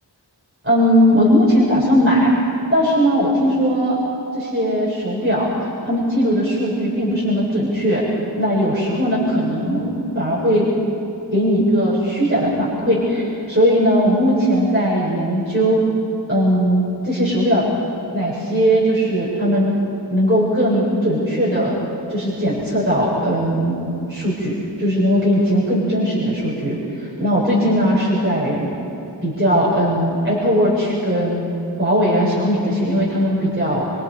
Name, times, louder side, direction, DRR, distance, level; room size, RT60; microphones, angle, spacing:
voice 1, 0.6-2.3 2.7-4.0 4.3-8.0 8.4-10.7 11.3-15.8 16.3-17.7 18.1-19.8 20.1-21.8 22.1-23.8 24.1-28.7 29.2-31.5 31.8-33.9, equal, 30° right, -8 dB, 7.1 m, -18 dB
27.0 x 24.5 x 5.2 m, 2.9 s
wide cardioid pair, 45°, 43 cm